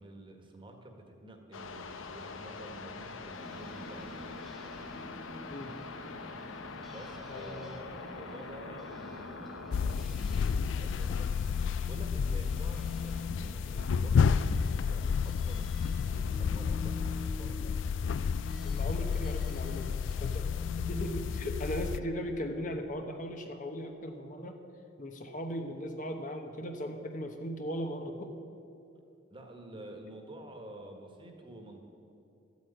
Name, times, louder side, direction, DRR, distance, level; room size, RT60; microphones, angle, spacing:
voice 1, 0.0-4.4 6.8-9.7 10.7-11.3 11.8-15.7 16.0-17.6 29.3-31.8, right 1 dB, 25° right, 3 dB, 1.6 m, -49 dB
sound 1, 1.5-10.0, left 4 dB, 90° left, 0.9 m, -44 dB
sound 2, 3.3-20.5, equal, ahead, 1.3 m, -51 dB
voice 2, 7.3-7.8 12.3-12.4 18.6-20.5 20.7-24.6 25.0-28.3, equal, 40° left, 4 dB, 1.0 m, -38 dB
sound 3, 9.7-22.0, left 6 dB, 70° left, 0.4 m, -31 dB
13.5 x 8.3 x 9.0 m, 2.7 s
head